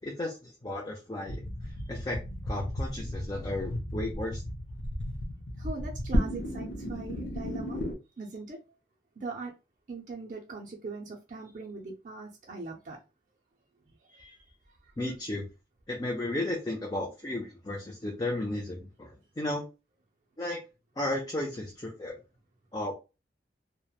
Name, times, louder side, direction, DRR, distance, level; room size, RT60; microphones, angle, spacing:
voice 1, 0.0-1.4 1.9-2.2 2.5-4.4 15.0-15.5 15.9-19.7 20.4-20.6 21.0-22.1 22.7-22.9, left 1 dB, 20° left, 0.4 m, -34 dB
sound 1, 1.2-7.9, equal, 80° left, 0.6 m, -34 dB
voice 2, 5.6-7.8 8.2-8.6 9.2-9.5 9.9-13.0 14.1-14.4, right 3 dB, 45° right, 0.4 m, -41 dB
2.9 x 2.1 x 2.3 m
head